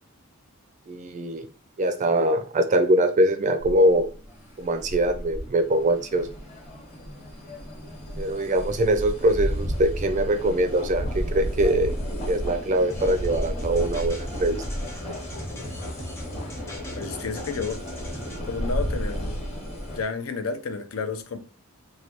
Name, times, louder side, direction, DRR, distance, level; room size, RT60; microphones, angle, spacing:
voice 1, 0.9-1.5 1.8-4.1 4.6-6.3 8.2-12.0 12.3-14.6, right 1 dB, 35° right, 0.4 m, -23 dB
sound 1, 3.6-20.0, equal, 30° left, 1.0 m, -33 dB
sound 2, 12.9-18.4, left 1 dB, 15° left, 0.6 m, -39 dB
voice 2, 16.9-17.8 18.4-19.5 19.9-21.4, left 5 dB, 80° left, 0.5 m, -31 dB
3.2 x 2.2 x 2.8 m
head